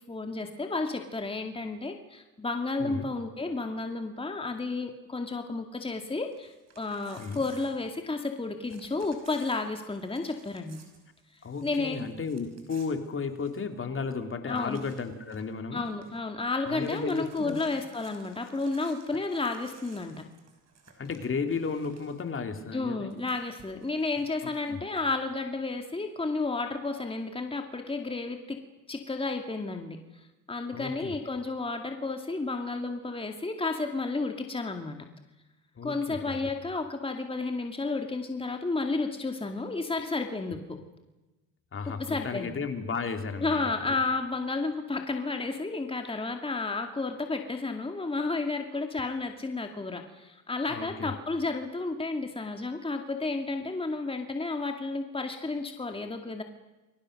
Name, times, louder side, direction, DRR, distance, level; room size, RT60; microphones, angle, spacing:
voice 1, 0.1-10.8 11.6-12.0 14.5-14.8 15.7-20.2 22.7-28.6 28.9-30.0 30.5-35.0 35.8-40.8 42.1-42.5 43.4-56.4, left 3 dB, 20° left, 4 dB, 2.3 m, -32 dB
Crumpling crinkling / Tearing, 6.2-8.4 8.7-13.8 14.1-14.2 14.5-15.5 15.8-16.2 16.5-22.3 23.1-24.7, right 5 dB, 60° right, 6.1 m, -58 dB
voice 2, 11.4-15.8 16.6-17.6 21.0-23.1 24.4-24.8 30.7-31.1 35.7-36.5 41.7-44.0 50.7-51.1, left 5 dB, 45° left, 6 dB, 3.0 m, -34 dB
29.5 x 22.5 x 6.6 m, 1.1 s
cardioid pair, 90°, 30 cm